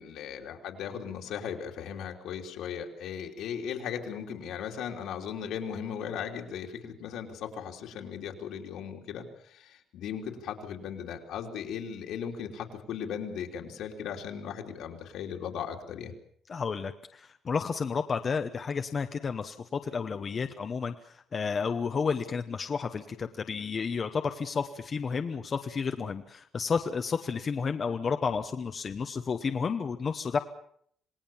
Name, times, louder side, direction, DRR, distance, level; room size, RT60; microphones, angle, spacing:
voice 1, 0.0-16.1, left 8 dB, 75° left, 2 dB, 3.4 m, -37 dB
voice 2, 16.5-30.4, left 5 dB, 30° left, 7 dB, 0.9 m, -31 dB
27.0 x 19.0 x 7.2 m, 0.66 s
cardioid pair, 165°, 0 cm